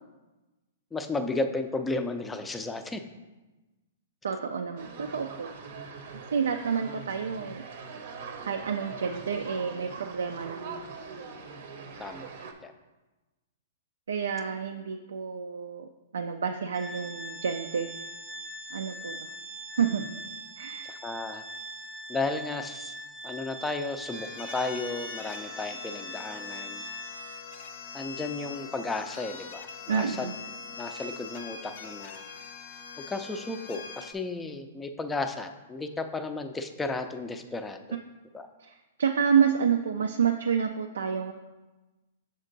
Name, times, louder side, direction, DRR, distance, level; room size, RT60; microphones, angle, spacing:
voice 1, 0.9-3.0 12.0-12.3 12.6-12.7 20.9-21.4 22.1-22.9 23.2-26.8 27.9-30.3 30.7-32.2 33.1-37.8 38.3-38.5, left 3 dB, 10° left, 7 dB, 0.4 m, -33 dB
voice 2, 4.2-5.5 6.3-7.6 8.5-10.8 14.1-17.9 18.7-19.3 19.8-20.2 20.6-20.9 29.9-30.3 38.6-41.3, right 7 dB, 90° right, 4 dB, 0.4 m, -29 dB
sound 1, 4.8-12.5, right 5 dB, 65° right, 0.7 m, -42 dB
Organ, 16.7-27.4, right 1 dB, 25° right, 0.7 m, -42 dB
sound 2, 24.1-34.1, left 5 dB, 60° left, 0.6 m, -42 dB
6.4 x 4.4 x 3.9 m, 1.1 s
hypercardioid pair, 140°, 0 cm